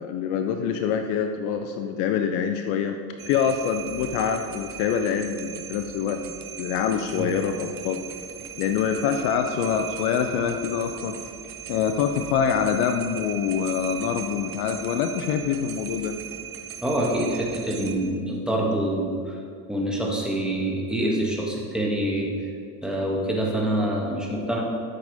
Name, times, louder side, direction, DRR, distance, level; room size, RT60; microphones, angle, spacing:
voice 1, 0.0-3.0 3.3-6.2 6.6-8.0 8.6-11.1 11.7-16.1, left 7 dB, 60° left, 6 dB, 0.8 m, -25 dB
sound 1, 3.2-18.0, right 9 dB, 45° right, 1.2 m, -38 dB
voice 2, 16.8-19.4 19.7-22.5 22.8-24.6, right 1 dB, ahead, -3 dB, 2.4 m, -26 dB
13.5 x 7.5 x 3.6 m, 2.2 s
hypercardioid pair, 70°, 49 cm